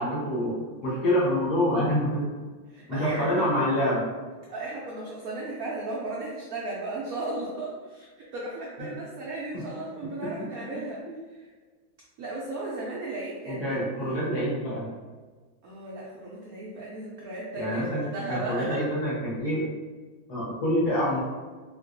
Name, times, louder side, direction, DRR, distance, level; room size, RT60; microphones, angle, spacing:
voice 1, 0.0-2.3 2.9-4.1 9.5-9.6 13.4-14.9 17.5-18.0 18.3-19.7 20.3-21.2, equal, 55° left, -7 dB, 1.5 m, -26 dB
voice 2, 2.7-3.4 4.5-11.0 11.3-11.5 12.2-14.2 15.6-18.8, right 2 dB, 75° right, -4 dB, 0.8 m, -35 dB
3.5 x 3.2 x 2.6 m, 1.4 s
omnidirectional pair, 2.1 m